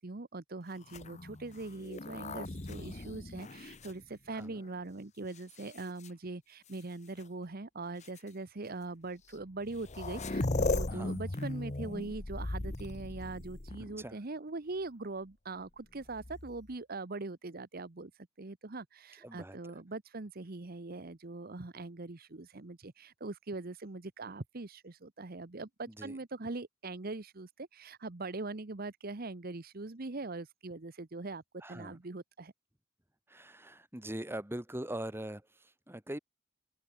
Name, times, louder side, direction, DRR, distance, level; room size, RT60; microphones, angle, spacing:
voice 1, 0.0-18.1 18.4-31.4 31.7-32.5, right 3 dB, 50° right, 1.0 m, -42 dB
sound 1, 0.8-4.7 5.4-6.1 7.2-7.3 8.0-8.2 9.3-9.4 9.6-14.1 16.0-16.7, left 2 dB, 35° left, 1.1 m, -37 dB
voice 2, 10.9-11.2 14.0-14.2 19.2-19.6 25.9-26.2 31.6-32.0 33.3-36.2, right 1 dB, 10° right, 2.2 m, -42 dB
open air
head